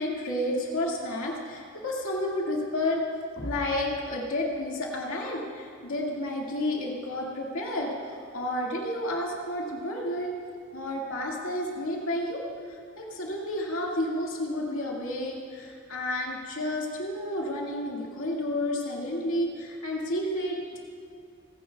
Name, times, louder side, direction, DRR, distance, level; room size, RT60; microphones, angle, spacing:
voice 1, 0.0-3.0 3.4-10.3 10.7-12.4 12.7-20.8, left 1 dB, 85° left, -2 dB, 2.1 m, -31 dB
29.5 x 10.0 x 2.3 m, 2.2 s
head